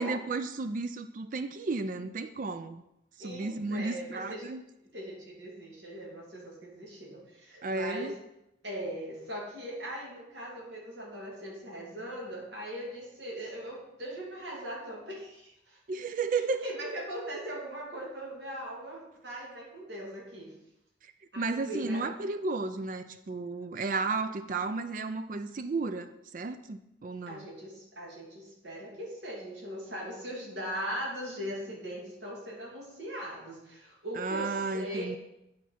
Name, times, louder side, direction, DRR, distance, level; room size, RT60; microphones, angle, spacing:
voice 1, 0.0-2.8 3.2-4.6 7.6-8.1 15.9-16.7 21.0-27.5 34.1-35.2, right 3 dB, 45° right, 10 dB, 0.4 m, -33 dB
voice 2, 3.2-4.5 4.9-8.1 8.6-15.8 16.3-20.5 21.3-22.1 27.3-35.2, equal, 65° right, -3 dB, 2.5 m, -40 dB
8.5 x 4.6 x 5.7 m, 0.84 s
head